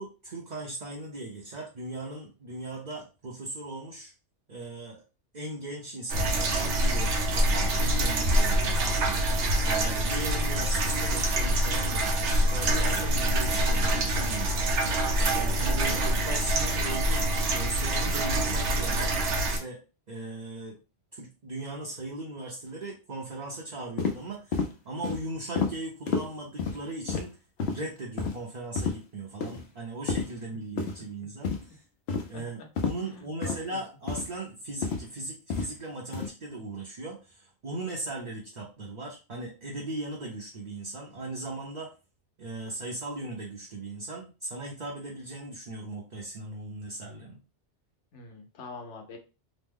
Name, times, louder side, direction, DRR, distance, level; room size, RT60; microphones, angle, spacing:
voice 1, 0.0-4.1 4.5-5.0 5.3-8.9 9.6-14.8 15.4-19.8 20.1-20.8 21.1-27.3 27.7-31.8 32.3-41.9 42.4-47.4, right 2 dB, 45° right, -2 dB, 0.7 m, -38 dB
sound 1, 6.1-19.6, right 1 dB, 85° right, 1.0 m, -25 dB
sound 2, 24.0-24.2 24.5-24.7 25.0-25.2 25.6-25.7 26.1-26.2 26.6-26.8 27.1-27.3 27.6-27.8 28.2-28.3 28.8-28.9 29.4-29.6 30.1-30.3 30.8-31.0 31.4-31.7 32.1-32.3 32.8-32.9 33.4-33.6 34.1-34.3 34.8-35.0 35.5-35.7 36.1-36.3, left 5 dB, 65° left, 0.8 m, -29 dB
voice 2, 33.0-33.8 48.1-49.2, left 3 dB, 85° left, 4 dB, 1.1 m, -45 dB
3.1 x 2.1 x 3.5 m, 0.31 s
omnidirectional pair, 1.2 m